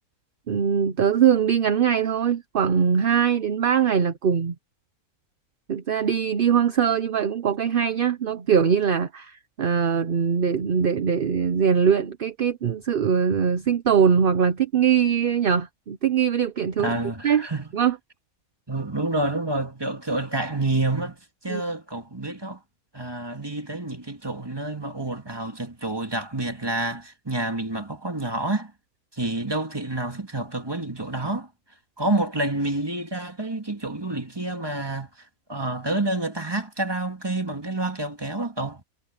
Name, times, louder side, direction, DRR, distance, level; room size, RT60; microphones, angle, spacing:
voice 1, 0.5-4.5 5.7-16.9 17.2-17.5 17.7-18.0 21.5-21.6, right 7 dB, 45° right, 0.8 m, -22 dB
voice 2, 16.8-17.6 18.7-21.2 21.4-22.6 22.9-28.7 29.1-31.5 32.0-35.1 35.5-38.8, right 2 dB, 15° right, 2.1 m, -28 dB
omnidirectional pair, 1.6 m